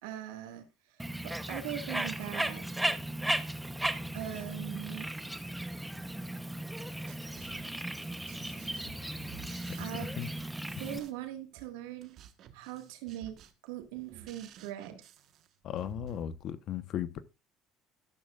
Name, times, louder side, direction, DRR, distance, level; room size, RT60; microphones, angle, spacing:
voice 1, 0.0-2.7 4.1-5.1 9.8-10.1 10.8-12.2 12.5-13.4 13.6-15.0, right 12 dB, 90° right, 1.9 m, -41 dB
Bird, 1.0-11.0, right 1 dB, 5° right, 0.9 m, -36 dB
sound 1, 6.8-16.4, right 10 dB, 60° right, 1.3 m, -53 dB
voice 2, 15.6-17.2, left 11 dB, 60° left, 1.0 m, -36 dB
12.5 x 12.0 x 2.5 m
supercardioid pair, 90°, 0 cm